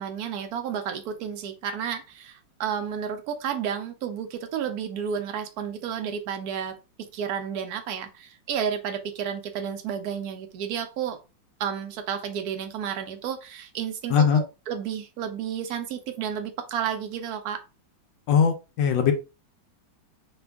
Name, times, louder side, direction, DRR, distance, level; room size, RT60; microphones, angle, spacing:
voice 1, 0.0-6.8 7.1-11.2 11.6-17.6, right 8 dB, 70° right, 6 dB, 0.9 m, -31 dB
voice 2, 14.1-14.4 18.3-19.1, left 7 dB, 75° left, 5 dB, 1.2 m, -20 dB
3.4 x 2.3 x 3.4 m, 0.29 s
omnidirectional pair, 2.1 m